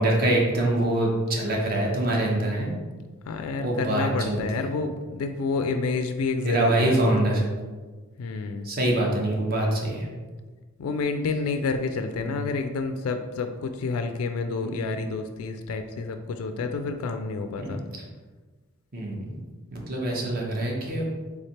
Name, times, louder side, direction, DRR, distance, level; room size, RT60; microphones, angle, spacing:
voice 1, 0.0-2.7 3.6-4.7 6.4-7.4 8.6-10.1 12.2-12.4 14.6-15.0 16.6-16.7 17.6-17.8 18.9-19.4 19.7-21.0, right 1 dB, 45° right, -2 dB, 0.9 m, -25 dB
voice 2, 3.3-7.2 8.2-8.7 10.8-17.8, left 4 dB, 85° left, 7 dB, 0.3 m, -29 dB
3.5 x 3.2 x 4.2 m, 1.4 s
head